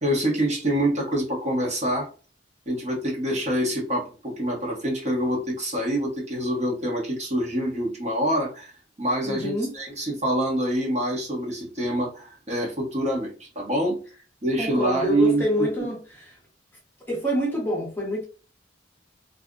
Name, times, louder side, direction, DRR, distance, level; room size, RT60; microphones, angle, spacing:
voice 1, 0.0-2.1 2.7-14.0 14.4-15.9, right 1 dB, 35° right, 0.9 m, -26 dB
voice 2, 9.2-9.7 14.6-16.2 17.1-18.2, equal, 10° left, 0.8 m, -26 dB
2.4 x 2.0 x 3.6 m
head